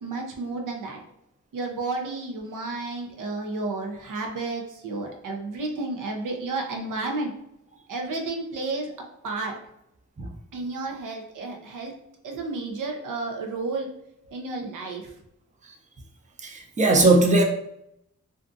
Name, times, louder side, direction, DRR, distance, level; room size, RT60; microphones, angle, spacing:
voice 1, 0.0-1.0 1.5-7.3 7.9-8.9 9.2-9.5 10.5-11.9 12.2-13.9 14.3-15.1, right 3 dB, 80° right, 2 dB, 0.6 m, -31 dB
voice 2, 16.4-17.4, right 2 dB, 25° right, 2 dB, 0.5 m, -19 dB
2.6 x 2.3 x 2.5 m, 0.78 s
cardioid pair, 65°, 31 cm